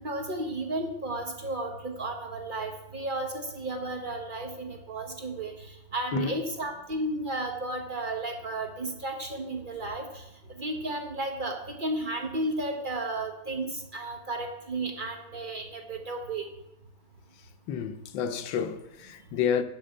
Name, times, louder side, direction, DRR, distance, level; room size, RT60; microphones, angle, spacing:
voice 1, 0.0-5.5 5.9-10.1 10.6-16.5, right 2 dB, 80° right, 0.4 m, -33 dB
voice 2, 6.1-6.4 17.7-19.6, left 8 dB, 70° left, 1.4 m, -30 dB
12.0 x 4.7 x 7.9 m
omnidirectional pair, 2.3 m